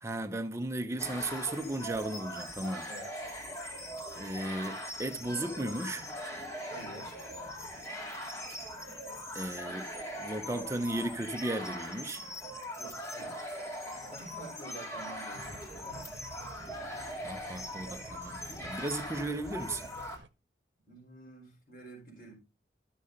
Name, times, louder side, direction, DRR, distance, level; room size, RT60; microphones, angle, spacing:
voice 1, 0.0-2.9 4.2-6.1 9.3-9.9 10.2-12.2 17.2-19.9, right 1 dB, 15° right, 0.9 m, -35 dB
sound 1, 1.0-20.2, equal, 15° left, 2.0 m, -41 dB
voice 2, 2.9-3.3 6.6-7.2 12.8-13.5 14.0-16.3 20.9-22.3, right 1 dB, 50° left, 4.9 m, -49 dB
sound 2, 15.9-20.3, right 3 dB, 85° right, 0.8 m, -52 dB
13.0 x 6.4 x 4.0 m
head